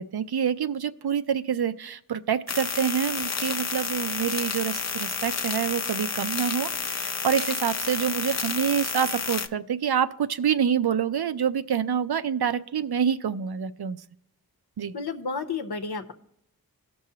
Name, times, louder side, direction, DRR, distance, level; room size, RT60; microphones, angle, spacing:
voice 1, 0.0-14.0 14.8-14.9, right 8 dB, 80° right, 12 dB, 0.5 m, -27 dB
sound 1, 2.5-9.5, left 5 dB, 45° left, 0.5 m, -30 dB
voice 2, 14.9-16.1, left 4 dB, 85° left, 7 dB, 0.9 m, -31 dB
17.5 x 6.2 x 2.8 m, 0.79 s
wide cardioid pair, 55°, 38 cm